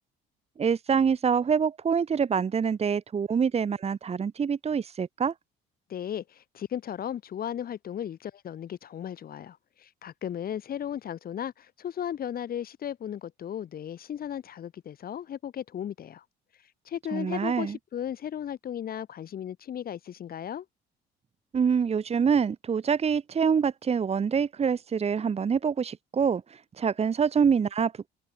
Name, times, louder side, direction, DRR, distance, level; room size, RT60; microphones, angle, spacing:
voice 1, 0.6-5.3 17.1-17.8 21.5-28.1, right 6 dB, 35° right, 2.0 m, -26 dB
voice 2, 5.9-16.2 16.9-20.7, left 9 dB, 50° left, 5.6 m, -35 dB
cardioid pair, 115°, 19 cm